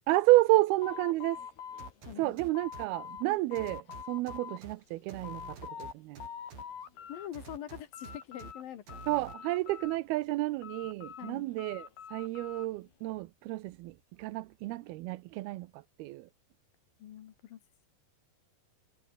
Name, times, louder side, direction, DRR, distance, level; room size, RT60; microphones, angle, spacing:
voice 1, 0.1-1.5 2.2-6.2 9.1-16.3, right 18 dB, 80° right, 2.7 m, -30 dB
sound 1, 0.8-3.3 3.5-4.6 5.0-5.9 6.2-7.3 7.6-8.6 8.9-10.2 10.6-12.7, left 7 dB, 85° left, 5.5 m, -45 dB
sound 2, 1.8-2.9 3.6-4.7 5.1-6.6 7.3-8.5 8.9-9.3, right 5 dB, 65° right, 7.2 m, -48 dB
voice 2, 2.1-2.4 7.1-9.0 11.2-11.5 17.0-17.6, left 10 dB, 70° left, 3.3 m, -44 dB
omnidirectional pair, 4.5 m